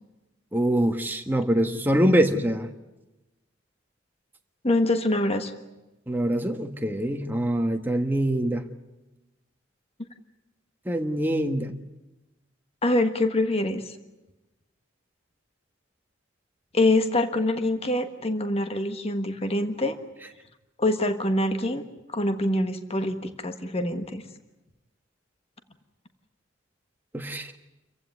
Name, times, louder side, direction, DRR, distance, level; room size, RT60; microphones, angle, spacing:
voice 1, 0.5-2.7 6.1-8.7 10.8-11.8 27.1-27.5, right 1 dB, 10° right, 4 dB, 1.4 m, -24 dB
voice 2, 4.6-5.5 12.8-14.0 16.7-20.0 20.8-21.8 22.1-24.2, left 1 dB, 30° left, 8 dB, 1.4 m, -25 dB
28.0 x 15.5 x 9.6 m, 1.0 s
head